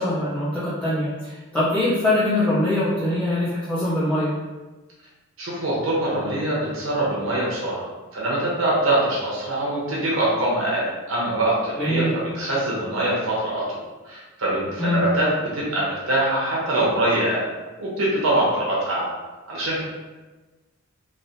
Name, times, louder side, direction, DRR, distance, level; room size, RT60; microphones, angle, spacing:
voice 1, 0.0-4.3 11.8-12.1 14.8-15.0, left 1 dB, 5° left, -13 dB, 0.6 m, -23 dB
voice 2, 5.4-13.8 14.0-17.5 17.8-19.0 19.5-19.8, right 1 dB, 70° right, -6 dB, 0.9 m, -23 dB
3.3 x 2.4 x 2.6 m, 1.2 s
head